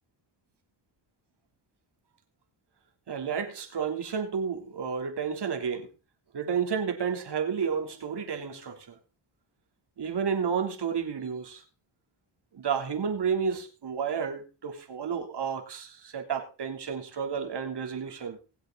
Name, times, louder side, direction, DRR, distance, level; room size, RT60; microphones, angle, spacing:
voice 1, 3.1-5.9 6.3-9.0 10.0-11.6 12.5-18.4, right 6 dB, 60° right, 3.5 m, -31 dB
20.5 x 8.1 x 4.1 m
cardioid pair, 95°, 46 cm